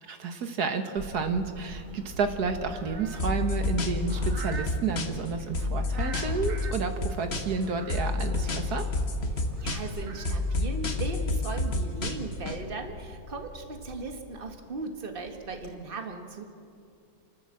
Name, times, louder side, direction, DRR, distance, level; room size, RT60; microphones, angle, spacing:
voice 1, 0.0-8.9, right 5 dB, 75° right, 7 dB, 1.9 m, -31 dB
Camera, 1.0-15.7, left 1 dB, 90° left, 3.8 m, -43 dB
sound 1, 1.5-11.0, right 5 dB, 55° right, 1.4 m, -47 dB
sound 2, 3.2-5.3 5.5-7.6 7.9-10.0 10.2-12.6, left 2 dB, 40° left, 1.5 m, -29 dB
voice 2, 9.6-16.4, right 3 dB, 35° right, 5 dB, 1.7 m, -37 dB
28.5 x 12.0 x 7.6 m, 2.6 s
omnidirectional pair, 1.7 m